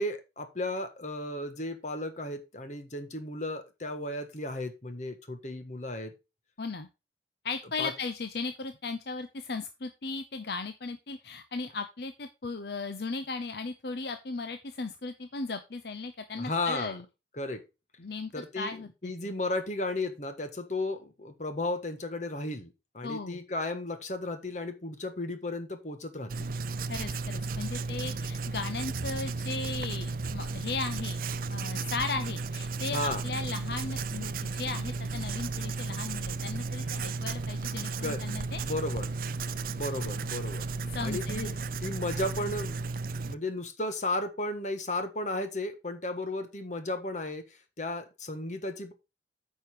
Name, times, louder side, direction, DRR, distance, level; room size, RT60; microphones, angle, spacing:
voice 1, 0.0-6.1 7.8-7.9 16.3-17.0 17.4-17.6 18.3-26.5 32.9-33.2 38.0-38.2 38.5-39.1 39.6-40.6 41.0-42.8 43.3-48.9, left 2 dB, 45° left, 8 dB, 1.4 m, -34 dB
voice 2, 7.4-17.0 18.0-19.3 23.0-23.4 26.9-31.2 31.5-38.6 40.9-41.5, left 4 dB, 65° left, 9 dB, 0.7 m, -37 dB
Writing, 26.3-43.3, right 4 dB, 55° right, 0.5 m, -34 dB
9.2 x 5.6 x 4.7 m, 0.26 s
head